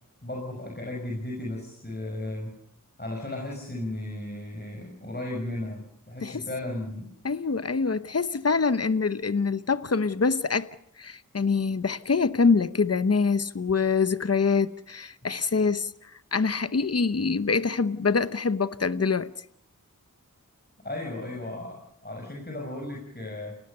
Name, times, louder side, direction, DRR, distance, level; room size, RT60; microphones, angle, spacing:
voice 1, 0.2-2.5 3.0-7.1 20.8-23.6, left 1 dB, 30° left, 6.1 m, -35 dB
voice 2, 7.2-10.7 11.0-15.9 16.3-19.3, left 4 dB, 50° left, 1.0 m, -25 dB
29.5 x 20.0 x 6.7 m
wide cardioid pair, 65°, 33 cm